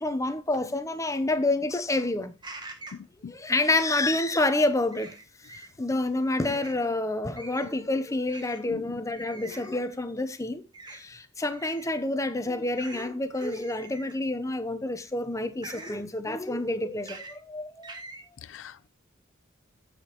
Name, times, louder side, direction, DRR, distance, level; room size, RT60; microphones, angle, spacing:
voice 1, 0.0-2.3 3.3-5.1 5.5-10.6 10.9-18.0, left 2 dB, 15° left, 0.8 m, -28 dB
sound 1, 2.4-3.0 4.9-5.7 6.4-6.8 7.4-7.8 8.3-8.6 9.1-9.7 10.7-11.0 11.5-11.9 12.7-13.1 13.3-14.2 15.6-16.0 17.0-17.3 17.8-18.2, right 2 dB, 20° right, 1.4 m, -44 dB
voice 2, 8.7-9.0 18.4-18.9, left 6 dB, 70° left, 0.4 m, -41 dB
15.0 x 5.1 x 3.0 m
head